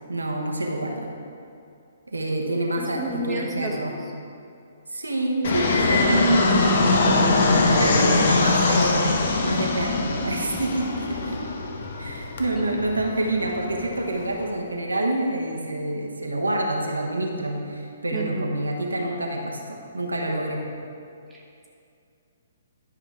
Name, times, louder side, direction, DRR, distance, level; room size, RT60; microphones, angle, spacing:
voice 1, 0.1-1.1 2.1-4.0 4.9-7.1 7.6-11.4 11.8-20.6, right 1 dB, 80° right, 0 dB, 1.1 m, -27 dB
voice 2, 2.8-4.1 12.5-12.6 18.1-18.5 21.3-21.7, right 1 dB, 10° right, -3 dB, 1.1 m, -32 dB
Fixed-wing aircraft airplane, 5.4-14.5, left 3 dB, 50° left, 1.0 m, -22 dB
11.0 x 6.0 x 3.5 m, 2.5 s
figure-of-eight pair, 125°, 0 cm